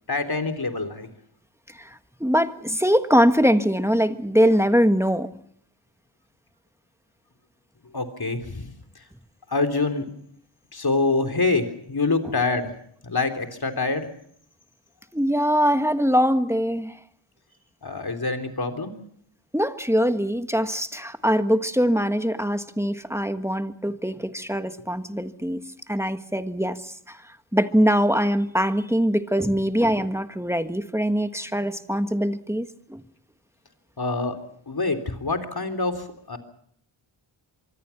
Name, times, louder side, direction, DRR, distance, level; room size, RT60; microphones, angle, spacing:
voice 1, 0.1-1.1 7.9-9.0 9.5-10.1 10.7-12.7 13.0-14.1 17.8-18.9 34.0-34.4 34.7-36.4, left 3 dB, 45° left, 6 dB, 3.6 m, -26 dB
voice 2, 1.8-5.3 15.1-17.0 19.5-25.6 25.9-27.2 27.5-33.0, equal, 5° right, 9 dB, 1.5 m, -22 dB
24.5 x 24.5 x 5.9 m, 0.66 s
wide cardioid pair, 80°, 50 cm